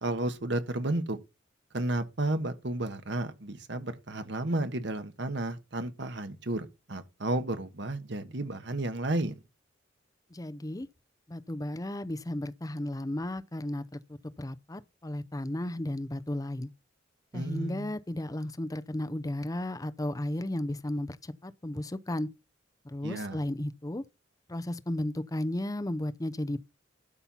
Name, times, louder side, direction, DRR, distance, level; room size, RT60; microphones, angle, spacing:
voice 1, 0.0-1.2 1.7-9.4 17.3-17.9 23.0-23.4, right 2 dB, 65° right, 1.3 m, -32 dB
voice 2, 10.3-10.9 11.3-16.7 17.3-22.3 22.8-24.0 24.5-26.7, left 1 dB, 20° left, 0.6 m, -34 dB
12.0 x 4.4 x 5.6 m
head